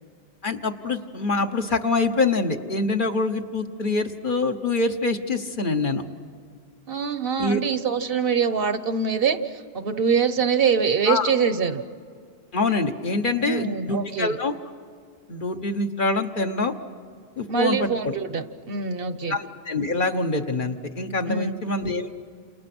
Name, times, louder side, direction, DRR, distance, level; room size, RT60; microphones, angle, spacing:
voice 1, 0.4-6.0 7.4-7.6 11.1-11.3 12.5-14.5 15.3-16.7 17.4-18.2 19.3-22.1, left 3 dB, 50° left, 5 dB, 1.4 m, -25 dB
voice 2, 6.9-11.8 13.4-14.4 17.5-19.4 21.3-21.5, right 6 dB, 65° right, 11 dB, 1.2 m, -24 dB
29.5 x 28.5 x 6.2 m, 2.1 s
omnidirectional pair, 1.1 m